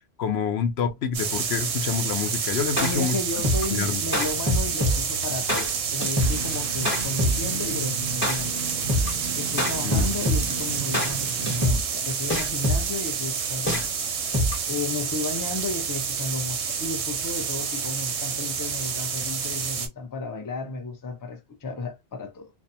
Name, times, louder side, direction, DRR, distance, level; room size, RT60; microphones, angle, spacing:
voice 1, 0.2-3.2 3.7-4.0 9.8-10.1, left 6 dB, 75° left, 0.8 m, -27 dB
sound 1, 1.1-19.9, right 6 dB, 90° right, 1.0 m, -29 dB
voice 2, 2.7-8.6 9.3-14.2 14.7-22.5, left 3 dB, 30° left, 0.4 m, -33 dB
sound 2, 2.8-14.9, left 1 dB, 10° left, 0.8 m, -25 dB
sound 3, 6.1-11.7, right 4 dB, 65° right, 0.7 m, -36 dB
2.6 x 2.1 x 2.7 m
omnidirectional pair, 1.1 m